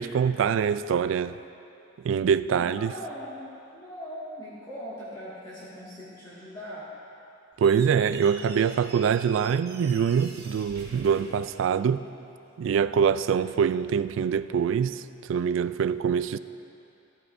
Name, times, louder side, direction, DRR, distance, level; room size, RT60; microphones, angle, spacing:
voice 1, 0.0-1.3 2.0-2.9 7.6-12.0 12.6-16.4, right 7 dB, 70° right, 0.3 m, -24 dB
voice 2, 2.5-6.9, equal, 20° left, 1.8 m, -40 dB
Squeak, 7.5-12.2, right 3 dB, 50° right, 1.6 m, -45 dB
15.0 x 14.0 x 2.6 m
head